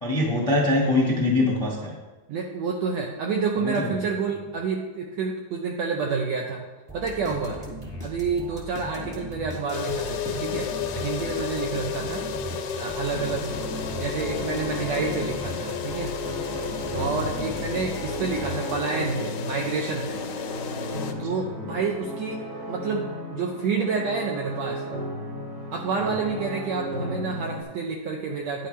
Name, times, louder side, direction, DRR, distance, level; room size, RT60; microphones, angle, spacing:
voice 1, 0.0-1.9 3.6-3.9 8.9-9.0 17.1-17.5 21.1-21.2 21.5-21.7 26.0-26.1, left 2 dB, 25° left, -3 dB, 0.6 m, -24 dB
voice 2, 2.3-6.6 6.9-7.6 8.0-12.2 12.8-16.2 16.9-20.2 21.2-22.4 22.7-24.8 25.7-28.7, right 5 dB, 75° right, 1 dB, 1.6 m, -29 dB
sound 1, 6.9-19.1, equal, 15° right, 1.1 m, -38 dB
sound 2, 9.7-21.1, left 7 dB, 75° left, 1.9 m, -33 dB
sound 3, 13.1-27.6, equal, 55° right, 3.0 m, -35 dB
10.0 x 10.0 x 3.3 m, 1.2 s
omnidirectional pair, 3.9 m